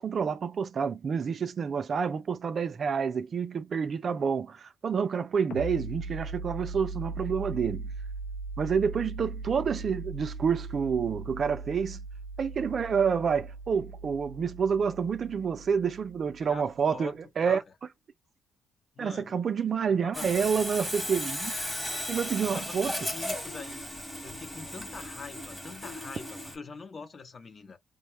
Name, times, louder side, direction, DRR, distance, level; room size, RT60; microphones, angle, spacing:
voice 1, 0.0-7.9 8.6-12.0 12.4-17.6 19.0-21.6 22.1-23.0, right 6 dB, 50° right, 0.4 m, -28 dB
sound 1, 5.5-16.8, right 3 dB, 80° left, 0.7 m, -39 dB
voice 2, 16.4-17.6 18.9-19.4 19.9-20.3 22.4-23.8 24.2-27.8, left 4 dB, 40° left, 0.7 m, -44 dB
Sawing, 20.1-26.6, left 1 dB, 10° left, 1.1 m, -36 dB
3.5 x 2.1 x 3.0 m
cardioid pair, 90°, 0 cm